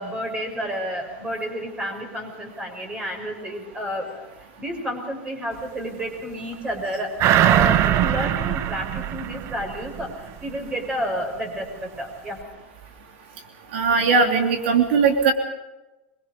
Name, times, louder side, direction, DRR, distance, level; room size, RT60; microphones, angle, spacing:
voice 1, 0.0-12.4, equal, 15° right, 2 dB, 6.2 m, -31 dB
sound 1, 7.2-10.1 10.5-10.6, right 11 dB, 45° right, 1.1 m, -21 dB
voice 2, 13.7-15.3, right 5 dB, 70° right, 4 dB, 3.1 m, -19 dB
25.5 x 22.0 x 5.4 m, 1.0 s
hypercardioid pair, 115°, 6 cm